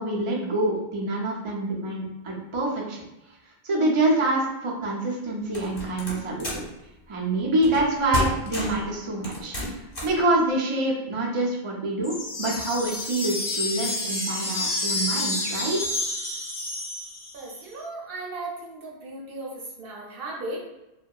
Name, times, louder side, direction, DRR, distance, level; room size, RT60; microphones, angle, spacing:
voice 1, 0.0-3.0 3.6-6.6 7.1-15.8, right 2 dB, 45° right, -3 dB, 0.4 m, -26 dB
sound 1, 5.5-6.7 7.6-7.9 8.1-8.9 9.2-10.2, left 2 dB, 55° left, 1.0 m, -31 dB
sound 2, 12.0-17.5, left 2 dB, 30° left, 0.3 m, -29 dB
voice 2, 17.3-20.6, right 2 dB, 60° right, -3 dB, 0.8 m, -36 dB
2.6 x 2.1 x 2.2 m, 0.94 s
omnidirectional pair, 1.1 m